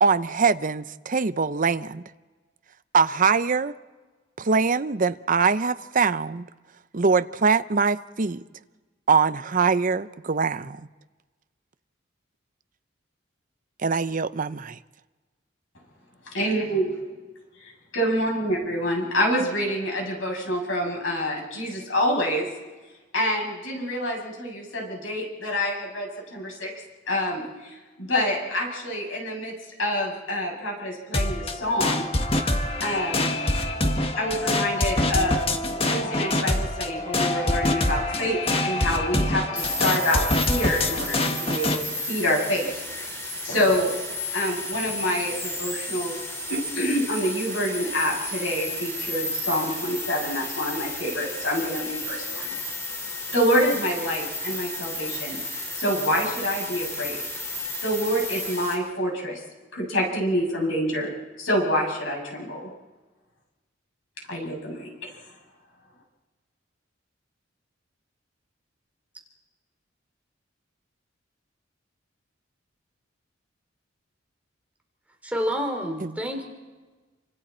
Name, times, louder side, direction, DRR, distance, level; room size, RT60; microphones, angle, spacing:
voice 1, 0.0-2.0 2.9-3.7 4.4-6.4 6.9-8.4 9.1-10.9 13.8-14.8 76.0-76.1, right 5 dB, 45° right, 0.6 m, -23 dB
voice 2, 16.3-16.9 17.9-22.5 23.1-26.7 27.1-29.5 29.8-32.1 32.8-33.3 34.2-35.5 35.9-43.9 44.3-46.1 46.5-52.6 53.3-55.4 55.8-57.2 57.8-59.4 59.7-61.1 61.4-62.7 64.3-65.1, equal, 80° left, 7.7 m, -27 dB
sound 1, 31.1-41.8, left 1 dB, 30° left, 1.6 m, -25 dB
sound 2, 39.6-58.7, left 1 dB, 15° left, 4.9 m, -33 dB
voice 3, 75.2-76.4, equal, 10° right, 3.2 m, -28 dB
29.0 x 26.0 x 4.4 m
head